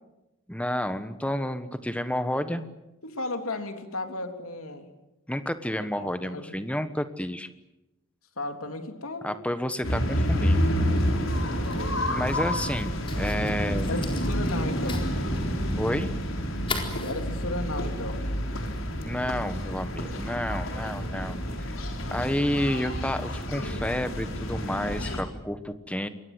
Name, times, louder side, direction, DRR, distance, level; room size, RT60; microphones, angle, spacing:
voice 1, 0.5-2.6 5.3-7.5 9.2-10.7 12.1-13.9 15.8-16.1 19.0-21.7 22.1-26.1, equal, 5° left, 10 dB, 1.2 m, -30 dB
voice 2, 3.0-4.9 6.0-6.5 8.4-9.3 11.4-12.3 13.8-15.1 17.0-18.2, left 2 dB, 90° left, 6 dB, 3.4 m, -35 dB
sound 1, 9.8-25.2, equal, 70° left, 4.5 m, -29 dB
Fire, 10.3-19.1, left 3 dB, 25° left, 4.3 m, -41 dB
27.5 x 22.5 x 8.0 m, 0.97 s
head